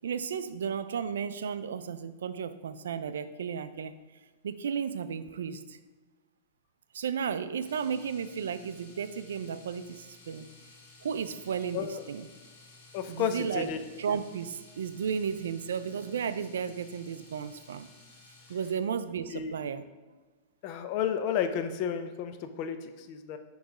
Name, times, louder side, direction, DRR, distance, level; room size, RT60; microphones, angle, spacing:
voice 1, 0.0-3.9 4.4-5.8 6.9-10.5 11.0-12.3 13.1-13.7 14.0-17.9 18.5-19.8, right 7 dB, 85° right, 12 dB, 0.3 m, -34 dB
Domestic sounds home sounds, 7.6-18.9 21.0-21.1 21.4-21.5, left 3 dB, 70° left, 1.7 m, -55 dB
voice 2, 11.7-12.0 12.9-13.8 14.1-14.2 19.3-19.5 20.6-23.4, left 8 dB, 45° left, 8 dB, 0.5 m, -32 dB
6.2 x 3.1 x 4.8 m, 1.3 s
hypercardioid pair, 135°, 0 cm